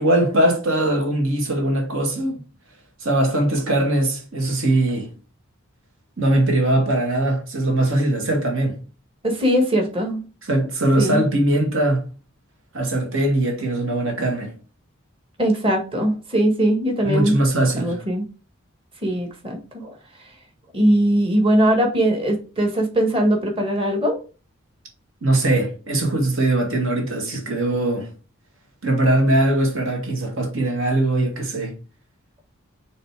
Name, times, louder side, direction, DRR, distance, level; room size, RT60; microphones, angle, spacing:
voice 1, 0.0-2.4 3.0-5.1 6.2-8.8 10.4-12.0 12.7-14.5 17.0-18.0 25.2-28.1 28.8-31.7, right 1 dB, 70° right, 2.1 m, -21 dB
voice 2, 9.2-10.2 11.0-11.2 15.4-17.3 17.8-18.2 19.0-19.9 20.7-24.2, right 1 dB, 25° right, 1.6 m, -20 dB
6.4 x 3.3 x 4.8 m
head